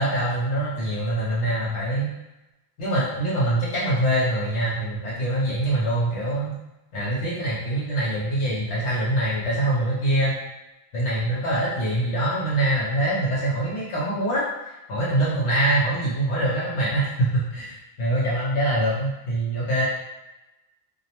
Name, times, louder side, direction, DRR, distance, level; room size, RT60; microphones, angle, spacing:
voice 1, 0.0-2.1 2.8-6.5 6.9-10.3 10.9-19.8, right 1 dB, 70° left, -7 dB, 1.0 m, -24 dB
2.5 x 2.0 x 2.8 m, 0.97 s
omnidirectional pair, 1.2 m